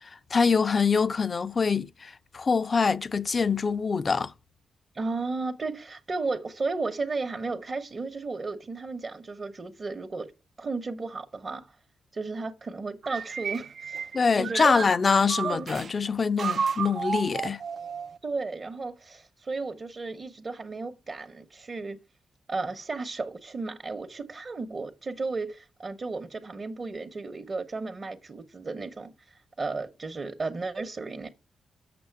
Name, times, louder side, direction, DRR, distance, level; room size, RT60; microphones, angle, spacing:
voice 1, 0.3-4.3 14.1-17.6, left 5 dB, 45° left, 0.5 m, -24 dB
voice 2, 4.9-10.3 10.6-11.8 12.1-14.1 14.4-14.8 15.4-15.7 18.2-22.0 22.5-31.3, right 3 dB, 45° right, 0.9 m, -34 dB
sound 1, 13.0-15.9 16.4-18.2, right 6 dB, 60° right, 0.5 m, -32 dB
6.9 x 6.1 x 4.6 m
supercardioid pair, 50°, 0 cm